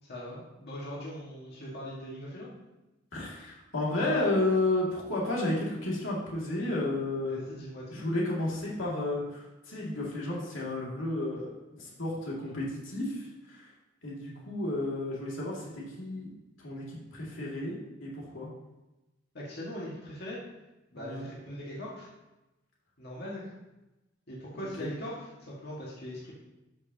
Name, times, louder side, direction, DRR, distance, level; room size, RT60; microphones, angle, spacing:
voice 1, 0.0-2.6 7.3-8.0 19.3-20.4 20.9-22.1 23.0-23.5 24.3-26.3, equal, 55° left, -6 dB, 1.9 m, -40 dB
voice 2, 3.1-7.4 7.9-13.7 14.0-16.3 16.6-18.5 20.9-21.3 24.5-24.9, left 2 dB, 90° left, -4 dB, 2.4 m, -32 dB
12.5 x 5.4 x 2.9 m, 1.0 s
head